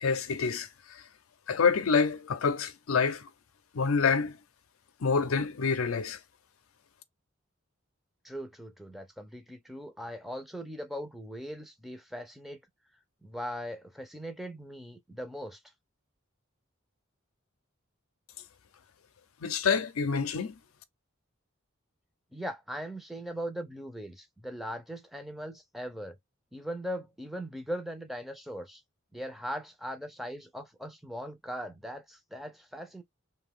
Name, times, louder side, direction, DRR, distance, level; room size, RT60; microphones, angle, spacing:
voice 1, 0.0-0.7 1.5-3.3 3.7-4.4 5.0-6.2 19.4-20.5, left 5 dB, 90° left, 0.5 m, -27 dB
voice 2, 8.2-12.6 13.2-15.6 22.3-26.2 26.5-28.8 29.1-33.0, equal, ahead, 0.5 m, -39 dB
2.7 x 2.2 x 3.5 m
head